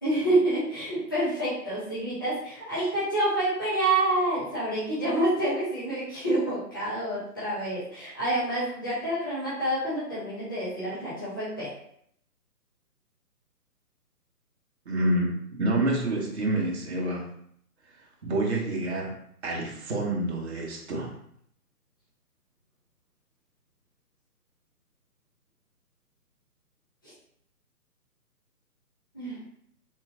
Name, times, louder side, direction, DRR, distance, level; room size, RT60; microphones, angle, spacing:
voice 1, 0.0-11.7 27.0-27.1 29.1-29.4, right 1 dB, 15° left, -12 dB, 0.5 m, -28 dB
voice 2, 14.9-17.2 18.2-19.1 19.4-21.1, right 1 dB, 45° right, -2 dB, 0.8 m, -28 dB
3.7 x 2.8 x 2.5 m, 0.68 s
figure-of-eight pair, 140°, 47 cm